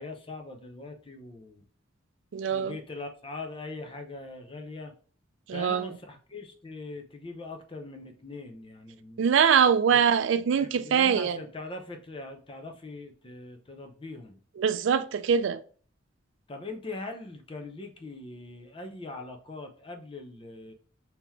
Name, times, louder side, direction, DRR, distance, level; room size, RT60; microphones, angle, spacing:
voice 1, 0.0-1.6 2.5-4.9 5.5-9.2 9.9-10.0 10.6-14.4 16.5-20.7, left 3 dB, 30° left, 0.6 m, -41 dB
voice 2, 2.3-2.8 5.5-5.9 9.2-11.4 14.6-15.6, right 7 dB, 70° right, 0.3 m, -23 dB
3.7 x 2.9 x 4.5 m
head